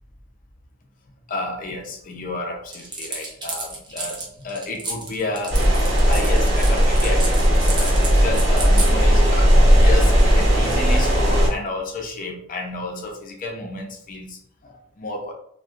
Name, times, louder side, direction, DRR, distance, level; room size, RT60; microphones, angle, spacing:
voice 1, 1.3-5.6 6.1-14.4 14.6-15.3, left 2 dB, 40° left, 2 dB, 0.5 m, -31 dB
sound 1, 2.7-8.9, right 3 dB, 20° right, 0.4 m, -31 dB
sound 2, 5.5-11.5, equal, 55° right, 1.0 m, -16 dB
2.6 x 2.1 x 2.3 m, 0.68 s
head